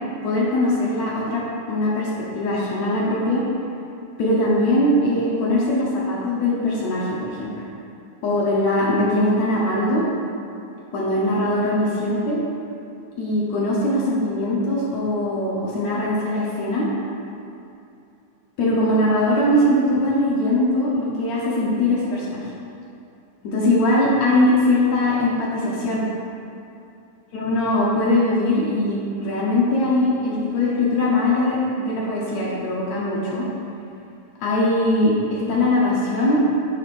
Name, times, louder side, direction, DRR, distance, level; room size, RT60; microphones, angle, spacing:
voice 1, 0.2-1.4 1.7-3.4 4.2-7.5 8.2-10.0 10.9-12.4 13.2-16.9 18.6-22.4 23.4-26.0 27.3-33.5 34.4-36.4, left 1 dB, 65° left, -6 dB, 1.9 m, -21 dB
8.6 x 6.4 x 2.6 m, 2.6 s
omnidirectional pair, 4.0 m